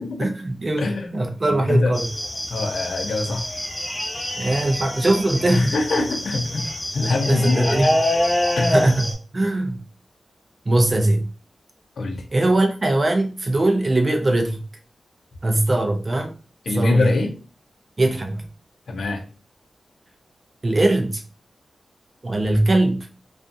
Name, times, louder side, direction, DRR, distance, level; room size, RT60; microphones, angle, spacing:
voice 1, 0.2-2.1 4.4-5.8 7.3-7.9 8.7-9.0 9.3-9.8 10.7-11.3 12.3-14.6 15.4-16.3 16.7-17.1 18.0-18.5 20.6-21.2 22.2-23.1, right 2 dB, 35° right, 0.4 m, -21 dB
voice 2, 0.8-1.9 2.5-3.5 5.5-7.9 8.6-8.9 12.0-12.2 16.7-17.3 18.9-19.2, left 2 dB, 80° left, 0.6 m, -23 dB
sound 1, 1.9-9.1, left 1 dB, 20° left, 0.8 m, -25 dB
2.5 x 2.4 x 2.6 m
wide cardioid pair, 125°, 0 cm